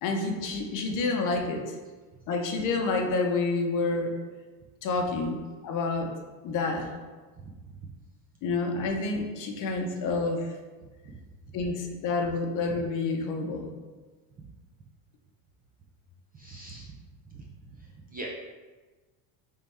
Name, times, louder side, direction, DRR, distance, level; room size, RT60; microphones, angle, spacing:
voice 1, 0.0-1.7 2.3-4.2 4.8-5.4 5.6-6.1 6.4-6.9 8.4-10.5 11.5-13.7, left 3 dB, 45° left, 3 dB, 0.7 m, -28 dB
voice 2, 10.8-11.2 14.4-14.5 16.3-16.9 17.3-18.3, right 3 dB, 20° right, -2 dB, 0.4 m, -44 dB
3.6 x 3.4 x 4.2 m, 1.3 s
cardioid pair, 140°, 44 cm